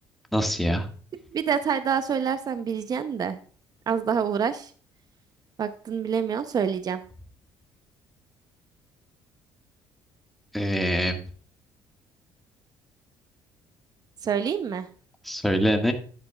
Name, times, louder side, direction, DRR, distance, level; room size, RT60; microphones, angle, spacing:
voice 1, 0.3-0.9 10.5-11.2 15.2-15.9, equal, ahead, 4 dB, 1.6 m, -24 dB
voice 2, 1.3-3.4 3.9-4.7 5.6-7.0 14.2-14.9, right 7 dB, 45° right, 11 dB, 0.7 m, -26 dB
10.0 x 9.7 x 2.3 m, 0.44 s
supercardioid pair, 80°, 9 cm